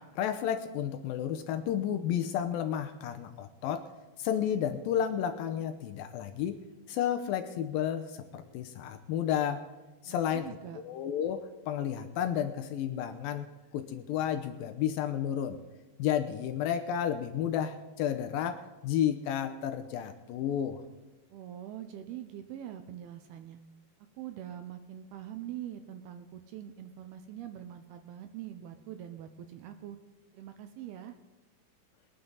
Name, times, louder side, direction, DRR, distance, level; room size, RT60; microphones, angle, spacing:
voice 1, 0.0-3.9 4.2-6.6 6.9-9.6 10.0-10.6 10.8-13.5 13.7-15.6 16.0-20.8, left 9 dB, 85° left, 8 dB, 2.0 m, -32 dB
voice 2, 10.0-10.8 21.3-23.6 24.2-30.0 30.3-31.2, right 11 dB, 80° right, 8 dB, 2.4 m, -43 dB
22.5 x 9.6 x 3.9 m, 1.2 s
omnidirectional pair, 5.0 m